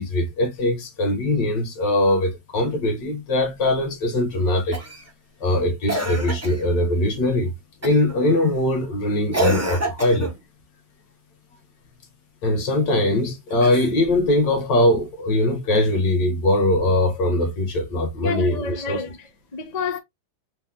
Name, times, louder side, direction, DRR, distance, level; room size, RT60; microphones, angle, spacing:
voice 1, 0.0-4.8 5.4-7.5 7.8-10.3 12.4-19.0, left 1 dB, 65° left, 1.9 m, -21 dB
Cough, 4.7-5.1 5.9-6.6 7.8-8.1 9.3-10.4 13.5-14.3 15.7-15.8, right 1 dB, 15° right, 0.6 m, -28 dB
voice 2, 18.2-19.3 19.5-20.0, left 4 dB, 45° left, 0.5 m, -29 dB
4.2 x 3.1 x 3.5 m
omnidirectional pair, 2.2 m